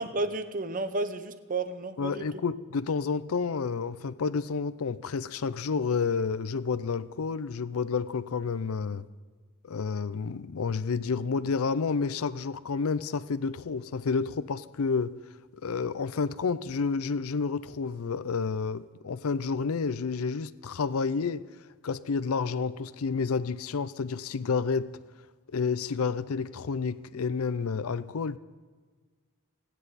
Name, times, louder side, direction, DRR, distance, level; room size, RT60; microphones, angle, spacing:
voice 1, 0.0-2.2, right 2 dB, 35° right, 0.9 m, -32 dB
voice 2, 2.0-9.0 9.7-15.2 15.6-21.4 21.8-24.9 25.5-28.4, left 5 dB, 70° left, 0.5 m, -30 dB
29.0 x 10.0 x 4.2 m
head